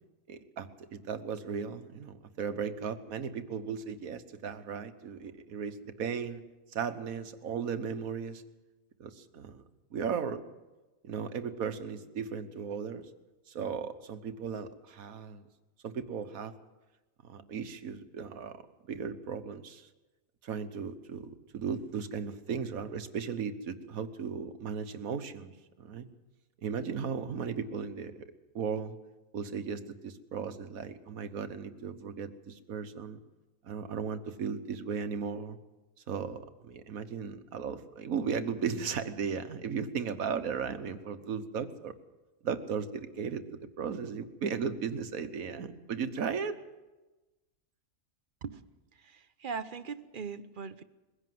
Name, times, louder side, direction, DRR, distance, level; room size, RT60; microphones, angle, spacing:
voice 1, 0.3-6.4 6.7-8.4 9.0-9.6 9.9-10.4 11.0-13.1 13.5-15.4 15.8-16.5 17.2-19.9 20.4-26.0 26.6-28.2 28.5-29.0 29.3-33.2 33.6-35.6 36.1-41.9 42.4-46.6, right 6 dB, 75° right, 10 dB, 1.6 m, -36 dB
voice 2, 48.9-50.8, right 5 dB, 45° right, 13 dB, 0.9 m, -40 dB
21.5 x 16.5 x 7.8 m, 1.1 s
omnidirectional pair, 1.5 m